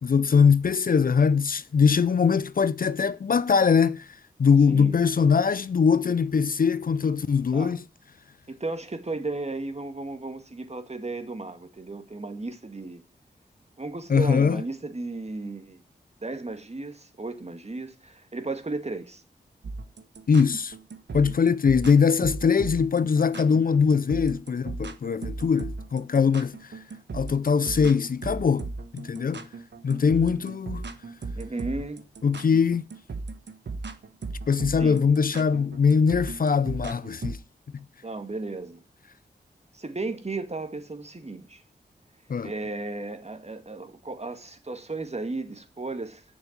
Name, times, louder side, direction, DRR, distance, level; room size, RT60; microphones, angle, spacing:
voice 1, 0.0-4.1 4.4-7.8 14.1-14.6 20.3-20.7 21.1-26.7 27.1-28.7 28.9-29.5 29.8-30.9 32.2-32.8 34.5-37.4 42.3-42.5, left 6 dB, 50° left, 0.5 m, -22 dB
voice 2, 4.7-5.0 7.5-7.8 8.5-13.0 13.8-15.8 16.2-19.2 31.4-32.0 34.8-35.0 38.0-38.8 39.7-41.6 42.4-46.2, right 3 dB, 35° right, 2.0 m, -34 dB
sound 1, 19.6-37.4, right 3 dB, 70° right, 1.2 m, -37 dB
8.4 x 6.9 x 7.3 m
cardioid pair, 40°, 19 cm